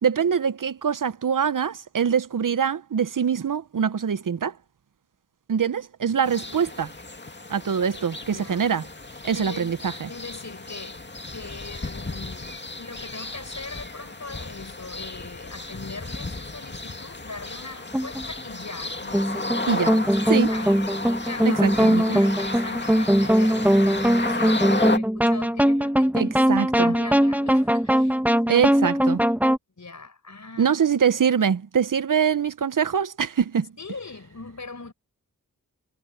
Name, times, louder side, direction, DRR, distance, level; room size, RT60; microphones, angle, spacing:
voice 1, 0.0-4.5 5.5-6.9 7.5-8.8 9.2-10.1 19.7-20.0 20.3-20.5 21.4-22.2 26.2-26.9 28.5-29.2 30.6-33.7, right 7 dB, 65° right, 0.8 m, -24 dB
sound 1, 6.2-25.0, left 2 dB, 30° left, 2.2 m, -33 dB
voice 2, 8.3-8.6 9.1-9.8 10.1-20.8 21.2-28.2 29.8-30.7 33.8-34.9, left 3 dB, 55° left, 5.5 m, -41 dB
sound 2, 17.9-18.2 19.1-29.6, equal, 5° right, 1.3 m, -21 dB
wide cardioid pair, 55°, 34 cm